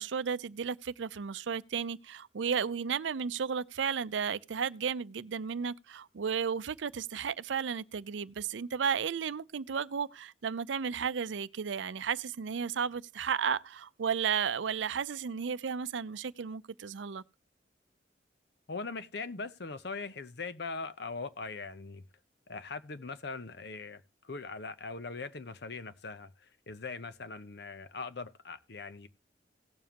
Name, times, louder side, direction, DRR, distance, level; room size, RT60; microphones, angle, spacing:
voice 1, 0.0-17.2, right 6 dB, 80° right, 0.5 m, -33 dB
voice 2, 18.7-22.0 22.5-29.1, left 4 dB, 60° left, 0.8 m, -41 dB
17.5 x 7.2 x 2.9 m
head